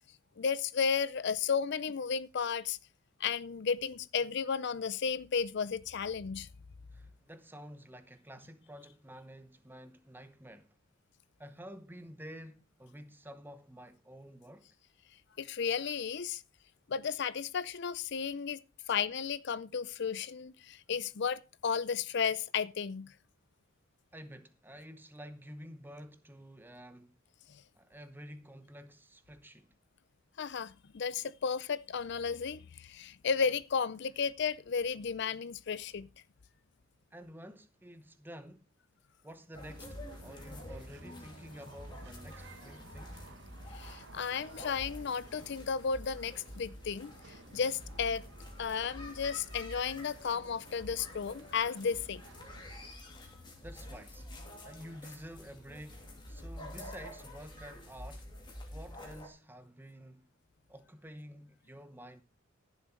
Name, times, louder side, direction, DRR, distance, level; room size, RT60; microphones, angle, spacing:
voice 1, 0.4-2.8 3.2-6.5 15.4-16.4 16.9-18.6 18.9-23.1 30.4-36.1 43.7-48.2 48.6-52.2 53.1-53.2, left 6 dB, 55° left, 0.5 m, -33 dB
voice 2, 6.9-10.8 11.4-14.8 24.1-27.2 27.7-29.7 37.1-38.7 39.2-43.2 53.6-54.3 54.6-58.3 58.7-60.3 60.7-62.2, equal, 10° right, 0.8 m, -50 dB
sound 1, 39.5-59.3, left 1 dB, 20° left, 2.7 m, -48 dB
sound 2, 39.7-52.9, right 3 dB, 55° right, 1.0 m, -57 dB
14.5 x 7.2 x 4.5 m
head